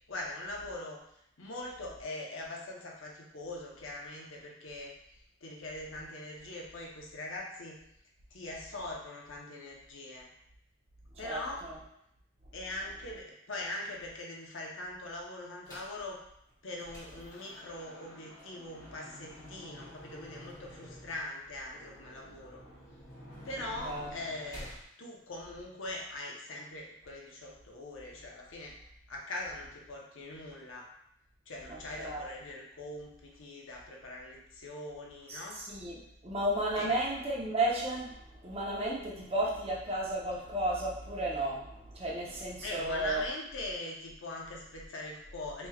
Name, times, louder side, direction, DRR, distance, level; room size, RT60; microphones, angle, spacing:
voice 1, 0.1-1.0 1.4-5.0 5.4-7.8 8.3-10.3 11.2-11.7 12.5-16.2 16.6-22.6 23.4-24.7 25.0-28.7 29.1-30.9 31.5-35.6 36.8-36.9 42.6-45.7, left 2 dB, 80° left, -1 dB, 0.8 m, -42 dB
voice 2, 11.2-11.8 23.8-24.1 31.7-32.3 35.3-38.1 38.4-43.2, right 1 dB, 30° right, -4 dB, 0.8 m, -33 dB
sound 1, 15.7-16.0 16.5-24.8, equal, 15° left, 1.1 m, -50 dB
4.5 x 3.1 x 2.3 m, 0.76 s
head